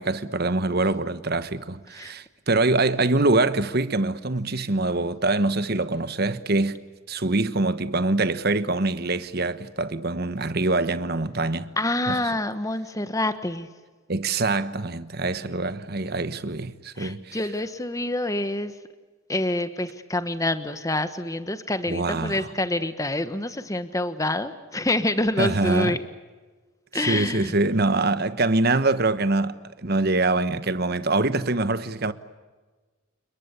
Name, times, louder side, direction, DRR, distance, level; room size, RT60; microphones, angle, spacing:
voice 1, 0.0-6.8 7.1-11.7 12.1-12.2 14.1-17.4 21.9-22.4 25.4-26.0 26.9-32.1, right 2 dB, 50° right, 1.2 m, -24 dB
voice 2, 11.8-13.7 17.0-18.7 19.3-26.0 26.9-27.6, left 1 dB, 15° left, 1.2 m, -27 dB
29.5 x 22.0 x 8.3 m
head